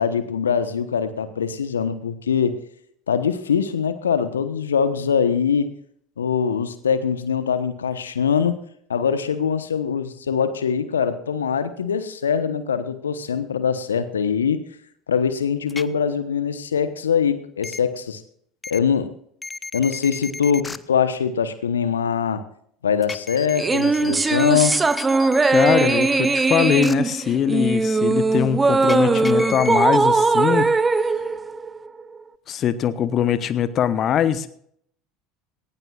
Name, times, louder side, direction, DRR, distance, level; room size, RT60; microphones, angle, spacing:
voice 1, 0.0-2.5 3.1-5.7 6.2-8.6 8.9-14.7 15.1-18.2 18.7-19.1 19.7-22.4 22.8-24.8, left 7 dB, 80° left, 12 dB, 1.1 m, -22 dB
sound 1, 15.7-15.8 17.6-17.8 18.6-18.8 19.4-20.8 23.0-26.9 28.8-30.0, left 3 dB, 15° left, 0.9 m, -34 dB
sound 2, 23.6-32.2, right 3 dB, 20° right, 0.9 m, -20 dB
voice 2, 25.5-30.7 32.5-34.5, left 9 dB, 45° left, 14 dB, 0.9 m, -22 dB
19.0 x 18.0 x 2.5 m, 0.66 s
figure-of-eight pair, 70°, 0 cm